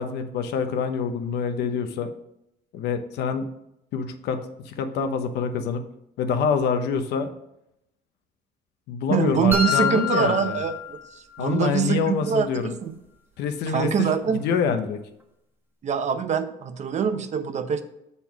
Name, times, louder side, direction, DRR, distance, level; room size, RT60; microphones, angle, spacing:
voice 1, 0.0-2.1 2.7-3.5 3.9-5.8 6.2-7.3 8.9-10.6 11.4-12.8 13.4-15.0, left 6 dB, 80° left, 8 dB, 0.9 m, -26 dB
voice 2, 9.1-12.9 13.7-14.4 15.8-17.8, right 7 dB, 45° right, 9 dB, 0.7 m, -24 dB
sound 1, 9.5-11.5, left 6 dB, 10° right, 1.1 m, -27 dB
6.8 x 4.3 x 5.9 m, 0.82 s
cardioid pair, 110°, 17 cm